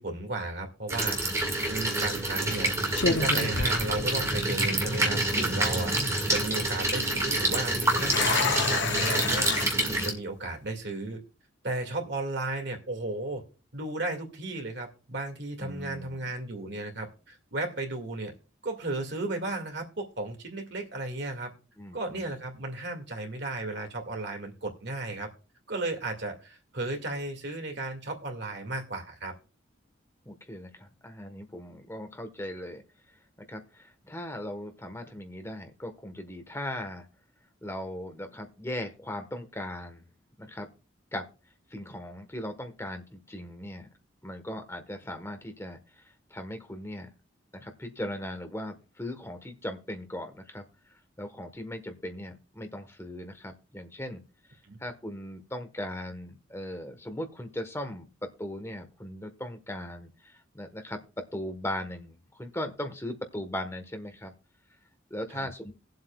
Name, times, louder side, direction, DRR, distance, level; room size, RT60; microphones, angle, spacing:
voice 1, 0.0-2.7 3.1-9.5 9.9-11.2 11.6-13.4 13.7-18.3 18.6-21.5 21.9-25.3 25.7-29.3 54.6-54.8 65.3-65.5, right 2 dB, 60° right, 4 dB, 2.1 m, -34 dB
sound 1, 0.9-10.1, right 1 dB, 15° right, 1.9 m, -27 dB
sound 2, 1.4-1.7 2.4-2.6 2.9-4.5 4.8-4.9 5.5-5.9 7.6-9.7, left 4 dB, 60° left, 0.8 m, -30 dB
voice 2, 15.6-16.3 21.8-22.3 30.2-32.8 33.5-37.1 37.6-40.1 40.4-40.7 41.1-41.3 41.7-43.9 44.2-46.0 46.3-47.1 47.5-50.6 51.2-54.2 54.8-64.3 65.1-65.7, left 1 dB, 15° left, 6 dB, 1.3 m, -38 dB
19.5 x 7.8 x 2.3 m, 0.34 s
head